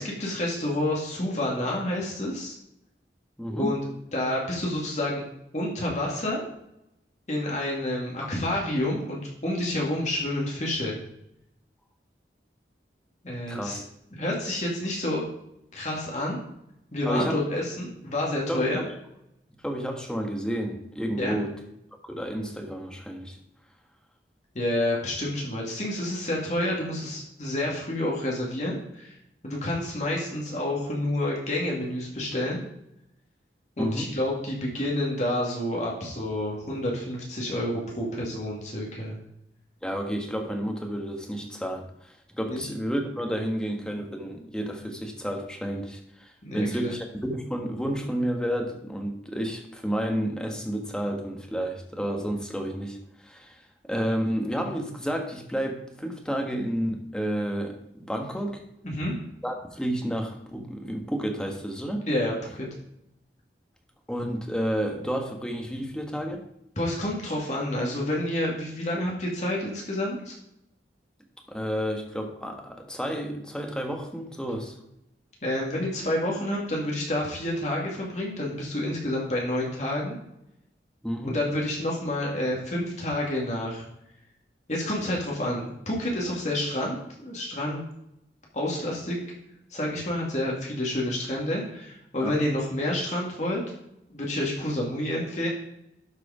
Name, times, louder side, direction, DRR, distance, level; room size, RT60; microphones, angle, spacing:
voice 1, 0.0-2.5 3.5-3.8 4.1-5.2 5.5-6.4 7.3-11.0 13.2-13.8 14.1-15.2 15.7-16.4 16.9-18.8 21.2-21.4 24.5-29.1 29.4-32.6 33.8-39.2 42.5-42.6 46.4-46.9 58.8-59.1 62.1-62.7 66.8-70.3 75.4-80.2 81.2-83.8 84.7-87.8 88.5-89.2 89.7-93.6 94.1-95.5, left 1 dB, 40° left, -2 dB, 2.1 m, -29 dB
voice 2, 3.4-3.7 8.2-8.3 13.5-13.8 17.0-17.4 18.5-18.9 19.6-21.5 22.0-23.4 33.8-34.1 39.8-53.0 53.2-58.6 59.4-62.0 64.1-66.4 71.5-74.8 81.0-81.4 92.2-92.4, equal, 5° left, 2 dB, 1.3 m, -31 dB
12.0 x 5.0 x 4.9 m, 0.80 s
head